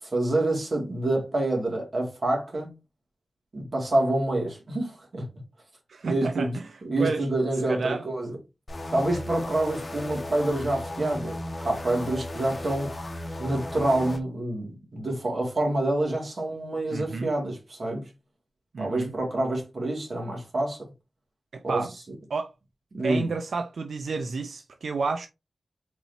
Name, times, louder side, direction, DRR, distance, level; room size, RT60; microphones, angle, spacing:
voice 1, 0.0-2.7 3.5-5.3 6.0-6.5 6.8-8.3 8.9-11.4 11.6-12.9 13.4-18.1 18.8-20.8 21.6-21.8 22.9-23.3, right 1 dB, 50° right, 2.1 m, -27 dB
voice 2, 5.9-7.3 7.7-8.0 16.9-17.3 18.7-19.1 21.5-21.9 22.3-22.5 23.0-25.3, right 4 dB, 85° right, 0.4 m, -31 dB
sound 1, 8.7-14.2, left 1 dB, 40° left, 0.8 m, -35 dB
4.5 x 3.9 x 2.7 m
wide cardioid pair, 95°, 0 cm